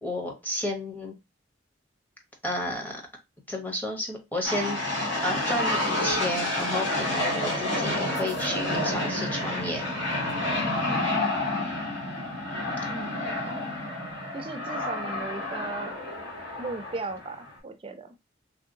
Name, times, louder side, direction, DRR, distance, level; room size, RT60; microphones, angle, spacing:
voice 1, 0.0-1.1 2.4-3.0 3.5-9.8, left 1 dB, 10° left, 0.7 m, -32 dB
sound 1, 4.4-17.6, left 1 dB, 85° left, 1.9 m, -29 dB
voice 2, 10.9-11.6 12.9-13.6 14.3-15.9 16.6-18.1, right 3 dB, 30° right, 0.4 m, -37 dB
3.2 x 2.7 x 2.6 m
head